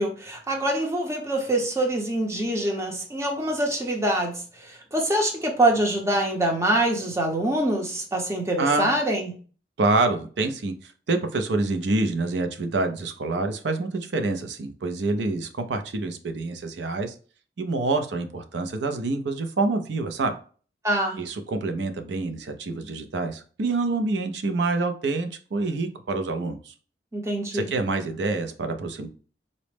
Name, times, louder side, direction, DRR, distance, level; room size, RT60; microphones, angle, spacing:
voice 1, 0.0-9.3 20.8-21.2 27.1-27.7, right 1 dB, 15° right, 0 dB, 0.6 m, -25 dB
voice 2, 8.6-8.9 9.8-17.1 17.6-20.3 21.2-26.7 27.5-29.1, right 3 dB, 75° right, 7 dB, 0.5 m, -27 dB
4.0 x 2.0 x 3.2 m, 0.40 s
head